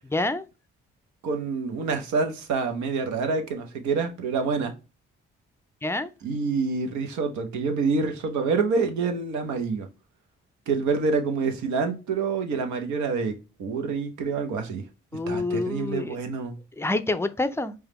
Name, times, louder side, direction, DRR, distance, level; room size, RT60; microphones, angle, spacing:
voice 1, 0.1-0.4 5.8-6.1 15.1-16.2 16.8-17.7, left 2 dB, 10° left, 0.5 m, -27 dB
voice 2, 1.2-4.7 6.2-9.9 10.7-13.3 13.6-14.8 15.3-16.5, right 4 dB, 75° right, 0.9 m, -27 dB
4.8 x 2.3 x 2.9 m
hypercardioid pair, 50°, 30 cm